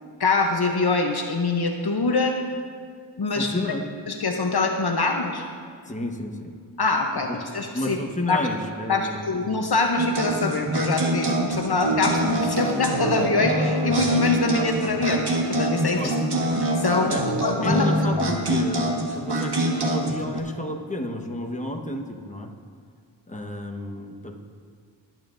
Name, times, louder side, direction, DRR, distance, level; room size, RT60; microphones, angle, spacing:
voice 1, 0.2-2.4 3.2-3.5 4.1-5.5 6.8-7.3 7.5-8.0 8.3-8.4 8.9-16.1 16.8-17.9 18.2-18.3, left 3 dB, 60° left, 3 dB, 0.9 m, -24 dB
voice 2, 3.3-3.9 5.9-6.5 7.3-7.4 7.7-9.6 16.0-16.2 17.1-17.3 17.6-22.5 23.3-24.4, left 1 dB, 15° left, 1 dB, 1.3 m, -31 dB
sound 1, 10.0-20.4, right 1 dB, 65° right, 1.6 m, -25 dB
20.0 x 9.1 x 2.6 m, 2.1 s
wide cardioid pair, 50°, 44 cm